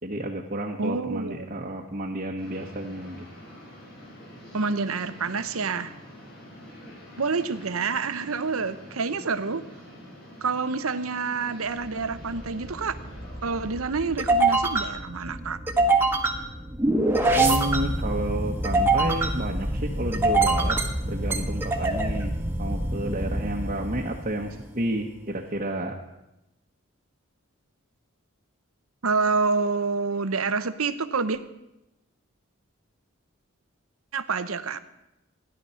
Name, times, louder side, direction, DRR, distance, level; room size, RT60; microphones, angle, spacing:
voice 1, 0.0-3.2 17.3-20.8 21.1-25.9, right 1 dB, 40° right, -2 dB, 1.2 m, -31 dB
voice 2, 0.8-1.5 4.5-5.9 7.2-9.6 10.4-13.0 13.4-15.6 29.0-31.4 34.1-34.8, right 4 dB, 90° right, 12 dB, 0.9 m, -27 dB
sound 1, 2.4-13.8, equal, 50° left, 6.8 m, -46 dB
sound 2, 11.9-24.6, right 2 dB, 10° right, 1.3 m, -25 dB
16.5 x 11.0 x 5.7 m, 0.92 s
head